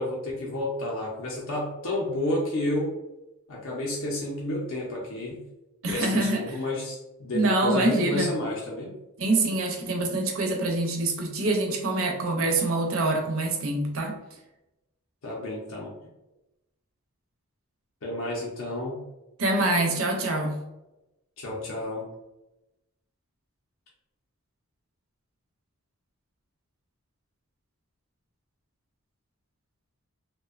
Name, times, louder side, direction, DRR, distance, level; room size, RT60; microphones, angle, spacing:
voice 1, 0.0-3.0 3.5-5.4 5.9-8.9 15.2-15.9 18.0-19.0 21.4-22.1, left 1 dB, 60° left, -3 dB, 0.4 m, -31 dB
voice 2, 5.8-6.6 7.3-8.3 9.2-14.2 19.4-20.6, right 2 dB, 65° right, 3 dB, 0.5 m, -25 dB
2.6 x 2.1 x 2.3 m, 0.95 s
head